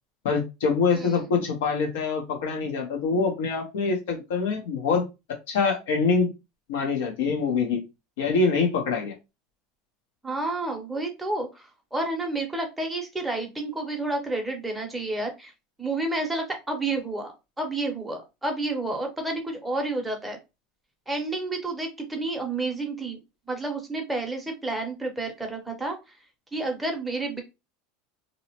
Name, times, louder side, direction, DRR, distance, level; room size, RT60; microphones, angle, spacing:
voice 1, 0.2-5.0 5.5-6.3 6.7-7.8 8.2-9.1, left 4 dB, 85° left, 1 dB, 0.8 m, -25 dB
voice 2, 10.2-15.5 15.8-20.4 21.1-23.2 23.5-26.0 26.5-27.4, right 2 dB, 5° right, 2 dB, 0.7 m, -30 dB
2.7 x 2.0 x 2.9 m, 0.25 s
supercardioid pair, 160°, 0 cm